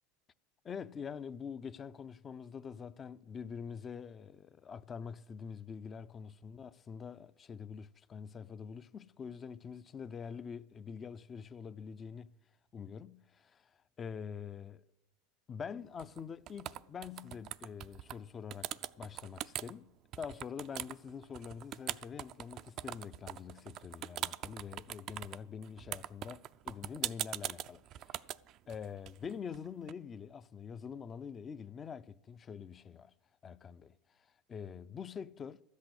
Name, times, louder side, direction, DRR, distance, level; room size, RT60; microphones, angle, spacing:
voice 1, 0.6-12.4 12.7-14.8 15.5-28.2 28.7-33.1 33.4-35.6, left 6 dB, 30° left, 0.5 m, -45 dB
sound 1, 16.0-16.2 16.5-18.2 18.5-19.7 20.1-29.9, right 13 dB, 50° right, 0.4 m, -41 dB
13.0 x 8.3 x 8.4 m
hypercardioid pair, 90°, 0 cm